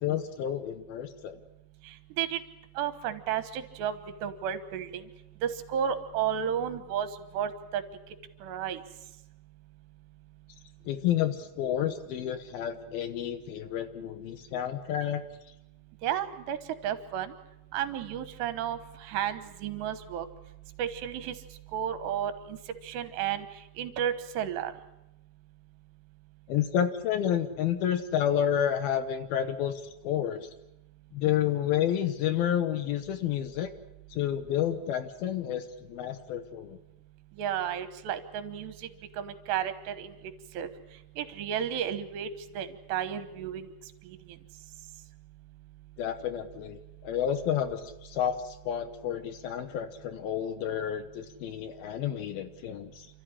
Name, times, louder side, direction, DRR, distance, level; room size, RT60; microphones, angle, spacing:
voice 1, 0.0-1.4 10.9-15.2 26.5-30.5 31.1-33.7 34.1-36.8 46.0-53.1, left 10 dB, 70° left, 10 dB, 2.6 m, -30 dB
voice 2, 2.8-4.0 4.2-5.0 5.4-7.1 7.3-7.8 8.4-8.8 16.0-16.6 16.8-17.3 17.7-20.3 20.8-21.3 21.7-22.6 22.8-23.5 23.8-24.7 37.4-38.7 39.2-40.1 40.5-40.7 41.2-42.3 42.5-43.7, right 9 dB, 80° right, 11 dB, 3.3 m, -32 dB
29.0 x 13.0 x 10.0 m, 0.92 s
omnidirectional pair, 5.0 m